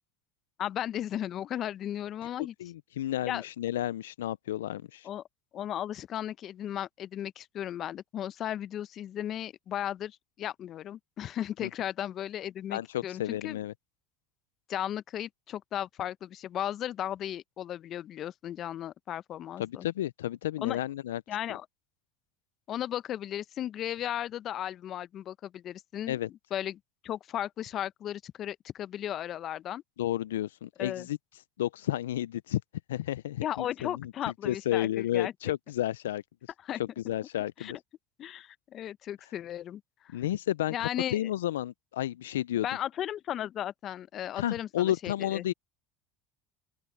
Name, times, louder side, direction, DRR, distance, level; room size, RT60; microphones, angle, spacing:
voice 1, 0.6-2.5 3.2-3.4 5.0-5.2 5.5-13.6 14.7-19.9 20.6-20.8 21.3-21.7 22.7-26.2 26.5-29.8 30.8-31.1 33.4-35.3 36.6-36.8 37.6-37.7 38.2-40.2 40.7-41.3 42.6-45.4, left 11 dB, 50° left, 0.8 m, -35 dB
voice 2, 2.6-5.1 11.6-11.7 12.7-13.7 19.6-21.2 26.1-26.3 30.0-31.2 31.6-32.6 32.9-34.1 34.4-36.2 37.0-37.8 40.1-42.7 44.3-45.5, left 13 dB, 85° left, 0.3 m, -31 dB
open air
hypercardioid pair, 75°, 0 cm